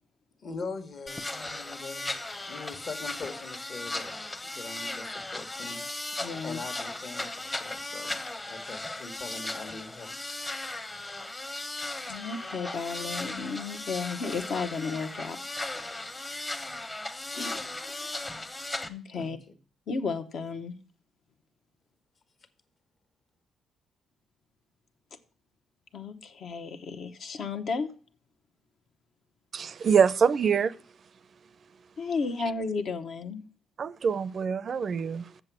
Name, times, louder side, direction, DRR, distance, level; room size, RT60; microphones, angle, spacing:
voice 1, 0.4-4.1 4.4-6.1 6.4-8.2 8.5-10.2 19.1-19.4, left 4 dB, 50° left, 1.4 m, -42 dB
sound 1, 1.1-18.9, left 2 dB, 20° left, 0.9 m, -37 dB
voice 2, 6.2-6.6 12.1-15.4 15.7-16.3 17.3-18.1 18.9-19.4 19.9-20.7 25.9-27.9 32.0-33.4, left 4 dB, 65° left, 1.1 m, -34 dB
voice 3, 29.5-30.7 33.8-35.3, right 6 dB, 50° right, 0.4 m, -25 dB
7.6 x 6.9 x 6.0 m
cardioid pair, 110°, 0 cm